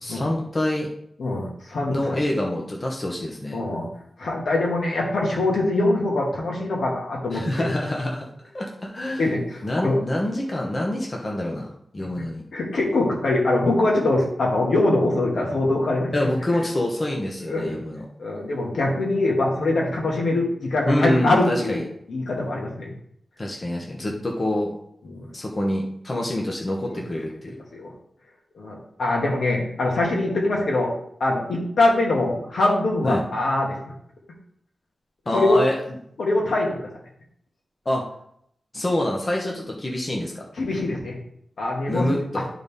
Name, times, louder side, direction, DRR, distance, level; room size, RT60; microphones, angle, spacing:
voice 1, 0.0-0.9 1.9-3.6 7.3-8.2 8.5-9.3 9.6-12.4 16.1-18.1 20.9-21.8 23.4-24.8 25.3-27.6 33.0-33.2 35.3-35.8 37.8-38.0 38.7-40.4 41.9-42.4, left 1 dB, 30° left, -1 dB, 1.0 m, -26 dB
voice 2, 1.2-2.0 3.5-3.9 4.2-7.7 9.2-10.0 12.5-16.1 17.5-17.8 18.2-21.8 22.1-22.9 25.0-25.3 26.9-27.0 27.7-27.9 28.6-30.9 31.2-33.8 35.3-35.6 36.2-36.9 40.6-41.2 41.6-42.1, left 2 dB, 75° left, -2 dB, 2.1 m, -23 dB
12.0 x 4.1 x 3.6 m, 0.71 s
wide cardioid pair, 145°, 0 cm